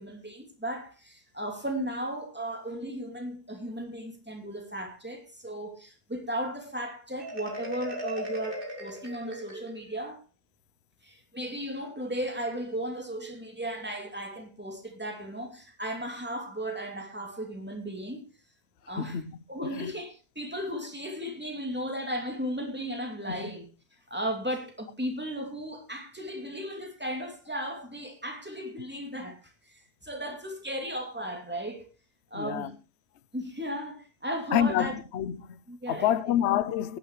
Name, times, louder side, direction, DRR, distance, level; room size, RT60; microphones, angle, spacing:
voice 1, 0.0-10.2 11.0-18.2 18.9-19.2 19.5-23.7 24.1-29.4 29.7-31.9 32.3-32.7 33.3-34.9 35.7-36.3, equal, 5° right, 2.6 m, -35 dB
Marimba xylophone, 7.2-10.0, equal, 35° right, 2.9 m, -38 dB
voice 2, 32.3-32.7 34.5-35.6 35.9-37.0, left 10 dB, 55° left, 0.8 m, -27 dB
18.0 x 10.0 x 3.1 m
omnidirectional pair, 1.7 m